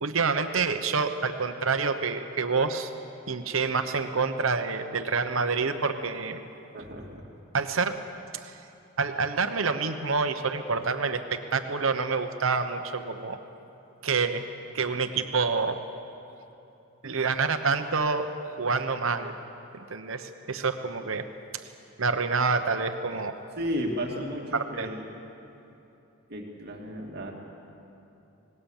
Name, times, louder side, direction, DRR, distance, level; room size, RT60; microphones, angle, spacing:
voice 1, 0.0-2.9 3.3-6.4 7.5-8.0 8.4-8.6 9.0-13.4 14.0-14.4 14.7-15.8 17.0-18.3 18.6-19.3 19.7-21.3 22.0-23.3 24.5-24.9, right 4 dB, 70° right, 7 dB, 1.0 m, -27 dB
voice 2, 6.7-7.3 23.6-25.0 26.3-27.3, equal, 50° right, 0 dB, 2.5 m, -33 dB
26.0 x 20.0 x 7.3 m, 2.9 s
head